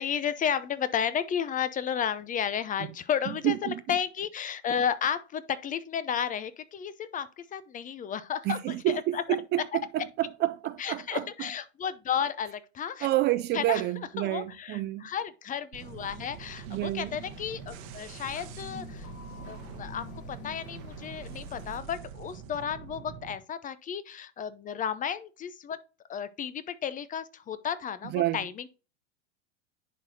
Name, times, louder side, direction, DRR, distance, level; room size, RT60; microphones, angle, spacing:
voice 1, 0.0-9.2 9.7-10.0 10.8-13.1 13.5-13.8 14.2-19.1 19.5-25.8 26.1-28.7, left 8 dB, 25° left, 0.6 m, -33 dB
voice 2, 3.4-3.8 8.4-11.2 13.0-15.0 16.7-17.1 28.1-28.4, right 16 dB, 30° right, 0.4 m, -29 dB
sound 1, 15.7-21.8, left 4 dB, 40° left, 1.9 m, -47 dB
sound 2, 15.7-23.4, right 9 dB, 50° right, 1.1 m, -45 dB
10.5 x 4.1 x 2.7 m
hypercardioid pair, 100°, 34 cm